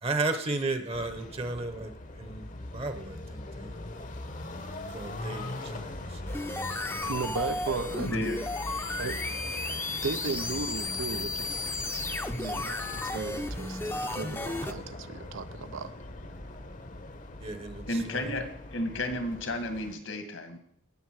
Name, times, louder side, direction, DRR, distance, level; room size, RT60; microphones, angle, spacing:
voice 1, 0.0-3.8 4.9-6.3 8.2-8.3 17.4-18.4, right 3 dB, 30° right, 0.9 m, -34 dB
sound 1, 0.9-19.9, left 1 dB, 40° left, 0.9 m, -41 dB
sound 2, 6.3-14.7, left 2 dB, 10° left, 0.7 m, -34 dB
voice 2, 7.0-8.3 9.0-9.2 10.0-11.7 12.4-16.0, right 4 dB, 70° right, 0.7 m, -36 dB
voice 3, 8.0-8.4 17.9-18.4 18.7-20.6, left 1 dB, 75° left, 2.1 m, -32 dB
18.0 x 6.7 x 4.8 m
head